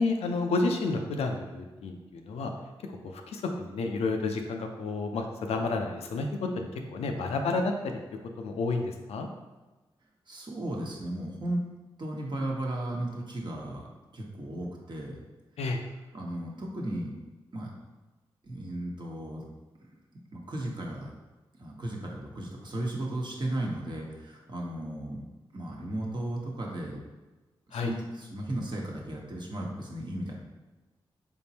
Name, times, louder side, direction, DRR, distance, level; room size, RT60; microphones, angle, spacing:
voice 1, 0.0-2.5 3.0-7.9 8.4-9.3 15.6-15.8 27.7-27.9, left 3 dB, 90° left, 4 dB, 0.5 m, -30 dB
voice 2, 10.3-11.6 12.0-13.8 14.1-15.1 16.1-17.1 17.5-17.7 18.4-19.5 20.3-21.1 21.6-25.2 25.5-27.0 27.7-30.3, right 1 dB, 45° right, -1 dB, 1.0 m, -35 dB
4.2 x 3.5 x 2.8 m, 1.2 s
cardioid pair, 50°, 10 cm